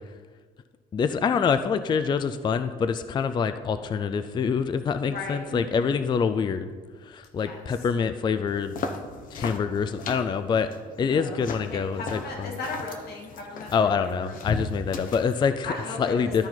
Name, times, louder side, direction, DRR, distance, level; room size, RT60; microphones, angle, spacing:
voice 1, 0.9-6.7 7.0-8.7 9.3-10.7 11.0-12.5 13.7-15.7 16.0-16.5, left 6 dB, 25° left, 10 dB, 0.3 m, -26 dB
voice 2, 5.0-6.0 7.3-7.8 11.0-14.3 15.7-16.5, left 3 dB, 70° left, 0 dB, 1.9 m, -37 dB
sound 1, 8.5-15.5, left 4 dB, 55° left, 0.8 m, -37 dB
12.5 x 4.4 x 3.9 m, 1.5 s
cardioid pair, 110°, 17 cm